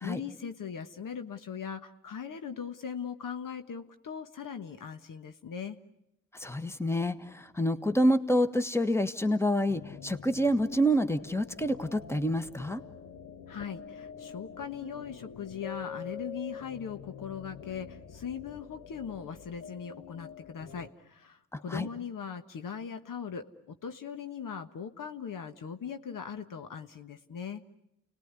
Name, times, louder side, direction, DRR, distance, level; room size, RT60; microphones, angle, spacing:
voice 1, 0.0-5.8 13.5-27.6, left 7 dB, 70° left, 8 dB, 1.4 m, -40 dB
voice 2, 6.4-12.8 21.5-21.9, equal, 10° left, 10 dB, 1.5 m, -27 dB
sound 1, 9.7-20.9, left 7 dB, 85° left, 1.2 m, -46 dB
29.5 x 19.5 x 9.7 m, 0.86 s
supercardioid pair, 50°, 34 cm